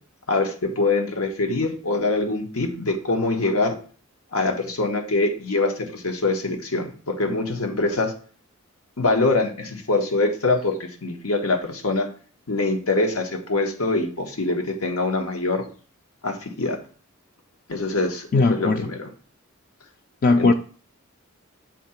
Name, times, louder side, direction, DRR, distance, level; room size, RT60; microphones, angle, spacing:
voice 1, 0.3-3.7 4.3-8.1 9.0-12.1 12.5-15.7 16.2-16.8 17.7-19.1 20.4-20.5, left 3 dB, 90° left, 3 dB, 1.4 m, -24 dB
voice 2, 18.3-18.9 20.2-20.5, left 3 dB, 40° left, 7 dB, 0.3 m, -18 dB
7.1 x 2.9 x 5.7 m, 0.41 s
head